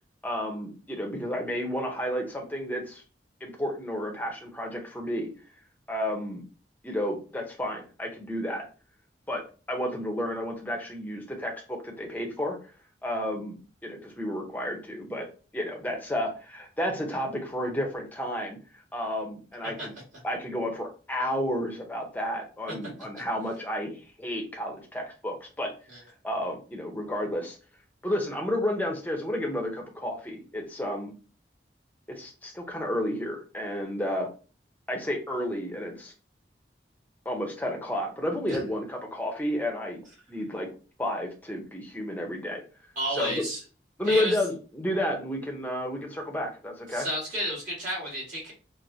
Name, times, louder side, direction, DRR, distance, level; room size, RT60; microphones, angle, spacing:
voice 1, 0.2-3.0 3.4-5.3 5.9-6.4 6.8-8.7 9.3-9.4 9.7-12.6 13.0-15.3 15.5-18.6 18.9-19.9 20.2-25.7 26.2-27.6 28.0-31.1 32.1-34.3 34.9-36.1 37.2-40.0 40.3-40.7 41.0-42.6 43.1-43.4 44.0-47.1, left 1 dB, 10° left, 1 dB, 0.7 m, -31 dB
voice 2, 43.0-43.6 44.0-44.3 46.9-48.5, right 1 dB, 45° right, -5 dB, 1.8 m, -31 dB
4.6 x 2.1 x 2.7 m, 0.35 s
head